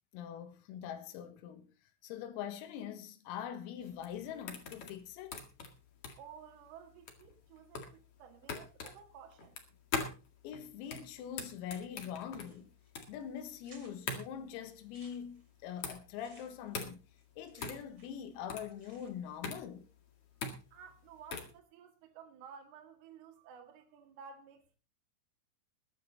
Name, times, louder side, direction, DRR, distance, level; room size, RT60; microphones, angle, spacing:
voice 1, 0.1-1.7 2.0-5.4 10.4-12.7 13.1-17.1 17.4-19.9, left 9 dB, 90° left, 4.1 m, -43 dB
sound 1, 3.8-21.6, left 5 dB, 60° left, 1.5 m, -43 dB
voice 2, 6.2-9.6 20.7-24.8, right 7 dB, 60° right, 3.3 m, -54 dB
sound 2, 12.4-12.9 13.2-13.3 13.6-14.2 14.7-18.3 18.5-19.4, right 3 dB, 25° right, 2.6 m, -62 dB
21.0 x 9.3 x 4.0 m
omnidirectional pair, 6.0 m